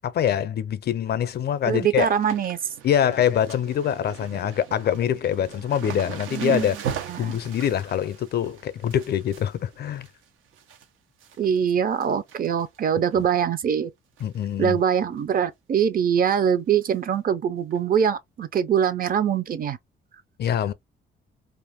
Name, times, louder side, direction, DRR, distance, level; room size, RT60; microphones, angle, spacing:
voice 1, 0.0-2.1 2.8-6.8 7.2-10.1 13.2-13.3 14.2-14.8 20.4-20.7, left 9 dB, 55° left, 0.5 m, -24 dB
sound 1, 1.1-1.4 1.6-10.9 11.2-11.6 11.9-12.8 13.1-13.2 14.2-14.4 14.7-14.8 15.2-15.3 16.9-17.0 17.7-17.8, right 8 dB, 90° right, 0.7 m, -39 dB
voice 2, 1.6-2.6 6.3-6.7 7.1-7.4 11.4-13.9 14.6-19.8, right 8 dB, 45° right, 0.5 m, -23 dB
2.5 x 2.5 x 3.5 m
cardioid pair, 90°, 20 cm